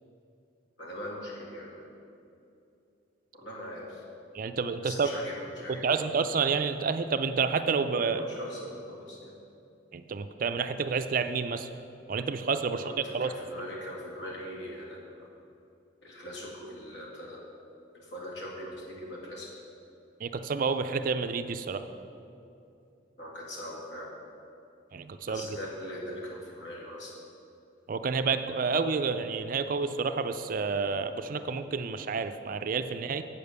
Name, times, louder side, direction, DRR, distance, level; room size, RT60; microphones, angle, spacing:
voice 1, 0.8-1.8 3.3-4.0 4.8-6.2 8.1-9.3 12.7-15.3 16.0-17.4 17.9-19.5 23.2-24.1 25.3-27.1, equal, 65° left, -4 dB, 2.3 m, -41 dB
voice 2, 4.3-5.1 5.8-8.2 9.9-11.7 12.1-12.8 13.1-13.3 20.2-21.8 24.9-25.6 27.9-33.2, right 5 dB, 45° right, 9 dB, 0.4 m, -29 dB
8.7 x 6.9 x 6.8 m, 2.7 s
head